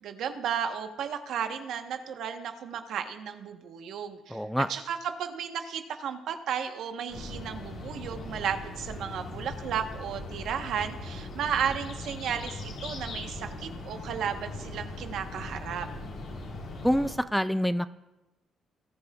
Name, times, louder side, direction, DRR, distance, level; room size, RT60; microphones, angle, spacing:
voice 1, 0.0-4.4 4.7-15.9, right 8 dB, 70° right, 7 dB, 1.0 m, -34 dB
voice 2, 4.3-4.7 16.8-17.9, equal, ahead, 13 dB, 0.3 m, -26 dB
sound 1, 7.1-17.1, left 2 dB, 60° left, 3.4 m, -40 dB
19.5 x 10.5 x 2.4 m, 1.0 s
cardioid pair, 105°, 0 cm